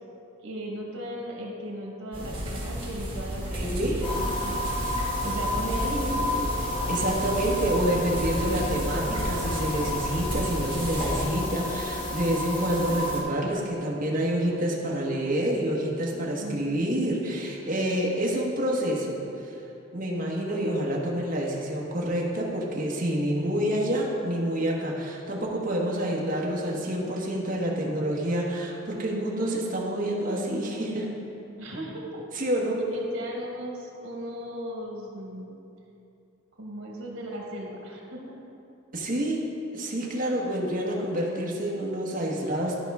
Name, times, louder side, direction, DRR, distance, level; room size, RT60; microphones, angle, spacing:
voice 1, 0.4-4.6 5.2-6.4 16.4-17.1 31.6-32.2 32.9-35.6 36.6-38.2, equal, 90° right, -1 dB, 1.3 m, -36 dB
sound 1, 2.1-11.2, equal, 25° right, 1.7 m, -33 dB
voice 2, 3.5-4.0 6.9-19.2 19.4-19.6 19.9-31.1 32.3-32.8 38.9-39.4 39.7-42.8, right 1 dB, 40° right, -3 dB, 1.1 m, -28 dB
sound 2, 4.0-13.2, left 1 dB, 25° left, 1.0 m, -31 dB
11.5 x 5.2 x 3.5 m, 2.8 s
head